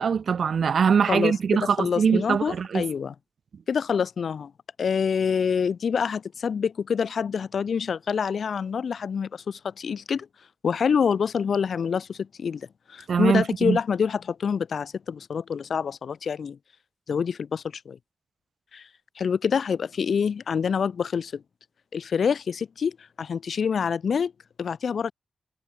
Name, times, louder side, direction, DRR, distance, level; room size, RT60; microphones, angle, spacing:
voice 1, 0.0-2.8 13.1-13.8, right 6 dB, 75° right, 2.8 m, -22 dB
voice 2, 1.1-3.1 3.7-4.5 4.8-10.3 10.6-16.6 17.1-18.0 18.7-18.9 19.2-21.4 21.9-24.3 24.6-25.1, left 6 dB, 75° left, 6.1 m, -26 dB
cardioid pair, 45°, 0 cm